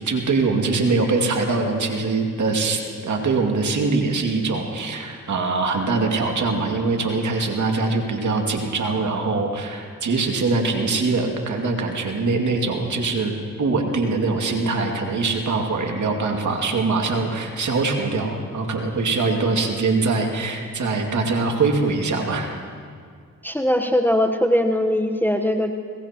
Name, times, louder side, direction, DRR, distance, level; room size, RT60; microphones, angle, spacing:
voice 1, 0.0-22.5, right 3 dB, 60° right, 2 dB, 2.4 m, -23 dB
voice 2, 23.4-25.7, left 1 dB, 5° left, 4 dB, 1.0 m, -20 dB
21.5 x 18.5 x 3.0 m, 2.1 s
supercardioid pair, 50°, 33 cm